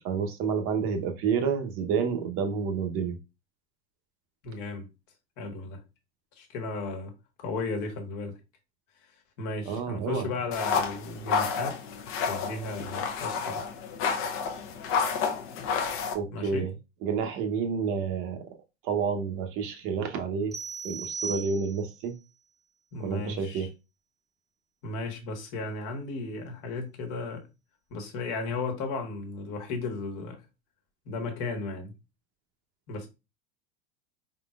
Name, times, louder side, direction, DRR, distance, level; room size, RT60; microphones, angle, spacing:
voice 1, 0.0-3.2 9.7-10.3 16.1-16.7 17.0-18.4 18.8-20.5 20.8-22.1 23.0-23.7, right 6 dB, 40° right, 0.9 m, -29 dB
voice 2, 4.4-4.9 5.4-5.8 6.4-7.1 7.4-8.4 9.4-11.8 12.3-13.6 16.3-16.7 22.9-23.7 24.8-27.4 27.9-30.4 31.0-31.9 32.9-33.1, left 3 dB, 55° left, 1.4 m, -35 dB
sound 1, 10.5-16.1, left 6 dB, 40° left, 0.7 m, -30 dB
sound 2, 20.5-22.0, right 4 dB, ahead, 0.7 m, -37 dB
4.4 x 3.8 x 2.4 m
supercardioid pair, 140°, 33 cm